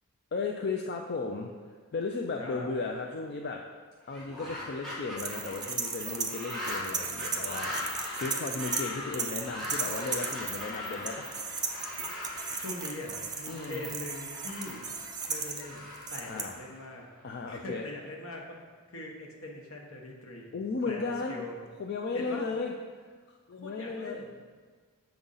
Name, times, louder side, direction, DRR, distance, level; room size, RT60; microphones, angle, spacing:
voice 1, 0.3-1.5 1.9-3.6 4.1-7.7 8.2-11.3 13.5-13.9 16.3-16.6 17.2-17.8 20.5-21.4 21.8-22.7 23.5-24.4, left 4 dB, 50° left, 2 dB, 0.4 m, -35 dB
sound 1, 4.0-17.2, left 2 dB, ahead, 1.7 m, -40 dB
sound 2, 5.2-8.9 9.1-16.4, right 5 dB, 20° right, 0.5 m, -36 dB
voice 2, 12.6-14.8 15.3-15.8 16.1-17.0 17.5-18.6 18.9-20.5 20.9-21.6 22.1-22.5 23.6-24.3, left 2 dB, 70° left, 0 dB, 1.1 m, -41 dB
7.0 x 3.8 x 5.5 m, 1.5 s
head